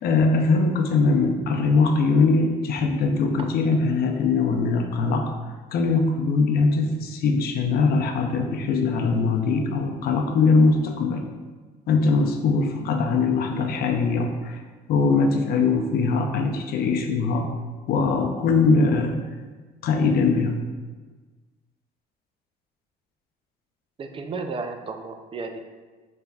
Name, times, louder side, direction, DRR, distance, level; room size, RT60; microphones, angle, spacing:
voice 1, 0.0-5.3 5.7-11.3 11.9-14.6 14.9-17.5 17.9-19.2 19.8-20.6, left 4 dB, 65° left, 4 dB, 0.6 m, -21 dB
voice 2, 24.0-25.6, right 4 dB, 30° right, 5 dB, 0.4 m, -33 dB
5.3 x 3.3 x 2.3 m, 1.4 s
cardioid pair, 110°, 17 cm